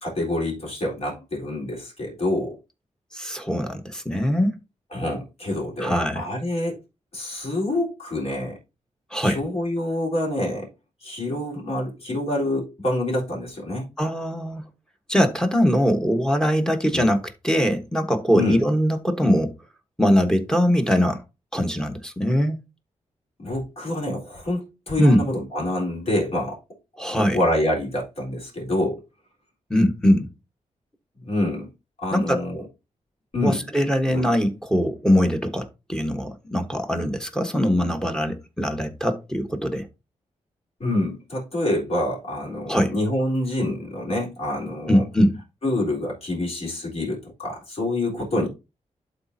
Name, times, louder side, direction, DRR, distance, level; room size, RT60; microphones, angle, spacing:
voice 1, 0.0-2.6 4.9-6.8 7.1-8.6 9.2-10.7 11.0-13.9 16.9-17.1 18.3-18.6 23.4-26.6 27.1-29.0 31.2-31.7 32.0-32.6 33.3-33.7 34.1-34.2 40.8-45.0 45.6-48.5, left 1 dB, 50° left, 4.0 m, -26 dB
voice 2, 3.1-4.6 5.8-6.2 9.1-9.4 14.0-14.7 15.1-19.5 20.0-21.2 21.5-22.6 25.0-25.2 27.0-27.4 29.7-30.3 32.1-32.4 33.4-39.9 42.7-42.9 44.9-45.4, equal, 5° left, 1.3 m, -22 dB
11.5 x 4.2 x 2.7 m
wide cardioid pair, 95°, 13 cm